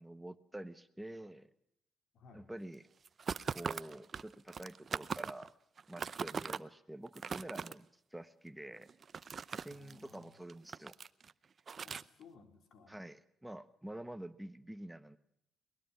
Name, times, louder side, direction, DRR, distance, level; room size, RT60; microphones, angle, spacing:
voice 1, 0.0-1.5 2.3-2.8 3.5-5.5 5.9-8.9 9.5-10.9 12.9-15.2, right 1 dB, 5° right, 12 dB, 1.2 m, -48 dB
voice 2, 2.1-2.5 9.7-10.4 11.8-12.9, left 4 dB, 65° left, 6 dB, 4.1 m, -59 dB
sound 1, 3.0-5.5 5.8-6.6 7.1-7.7 8.8-10.2 10.5-11.3 11.7-12.0, right 6 dB, 45° right, 0.7 m, -40 dB
22.5 x 20.0 x 5.8 m, 0.75 s
cardioid pair, 90°, 0 cm